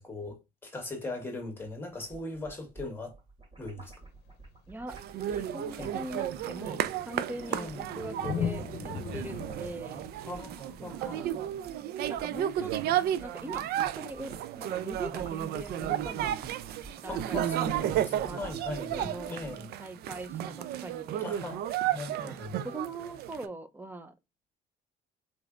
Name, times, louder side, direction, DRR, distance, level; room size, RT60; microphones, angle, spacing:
voice 1, 0.0-3.1 3.6-3.9 5.7-5.9 7.5-7.8 10.2-11.2 17.1-19.7 21.2-22.6, left 2 dB, 15° left, 1.5 m, -39 dB
sound 1, 1.9-8.1 8.4-14.5 14.8-19.6, right 3 dB, 35° right, 2.3 m, -50 dB
Thunder, 3.9-4.0 5.0-5.1 5.3-12.6 14.3-14.4, left 7 dB, 75° left, 0.7 m, -40 dB
sound 2, 4.9-23.5, right 11 dB, 70° right, 0.4 m, -33 dB
voice 2, 5.3-10.0 10.8-11.3 12.1-12.7 13.2-16.5 17.0-17.9 18.2-18.5 19.0-19.4 19.8-21.2 22.1-22.4 22.6-24.1, right 2 dB, 10° right, 0.6 m, -41 dB
3.9 x 3.1 x 2.3 m
cardioid pair, 110°, 17 cm